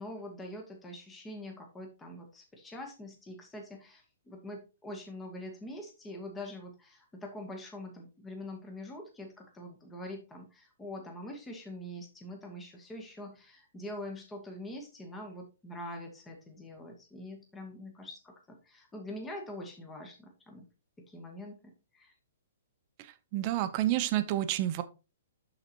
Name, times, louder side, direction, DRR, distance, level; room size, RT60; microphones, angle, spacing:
voice 1, 0.0-20.7 21.1-22.1, left 1 dB, 10° left, 2 dB, 1.0 m, -44 dB
voice 2, 23.0-24.8, right 14 dB, 30° right, 11 dB, 0.6 m, -30 dB
11.5 x 4.0 x 2.9 m, 0.30 s
hypercardioid pair, 165°, 0 cm